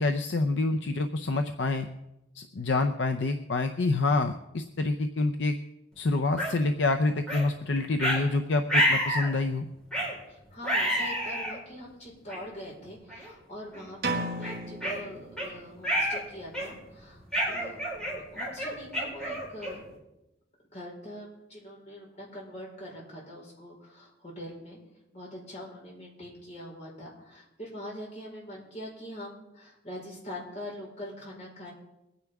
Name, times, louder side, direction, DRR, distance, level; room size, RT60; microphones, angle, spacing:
voice 1, 0.0-1.9 2.4-5.6 6.0-9.7, left 3 dB, 65° left, 7 dB, 0.6 m, -27 dB
sound 1, 6.4-6.5 7.3-7.5 8.0-8.2 8.7-9.3 9.9-10.1 10.6-11.6 12.3-12.4 13.1-13.3 13.7-13.9 14.4-15.5 15.8-16.2 16.5-16.9 17.3-19.9, equal, 5° left, 4.3 m, -28 dB
voice 2, 10.3-19.8 20.7-24.8 25.1-31.7, equal, 35° left, -3 dB, 4.6 m, -43 dB
sound 2, 14.0-15.9, right 2 dB, 55° right, 1.7 m, -34 dB
22.5 x 9.6 x 3.5 m, 0.92 s
head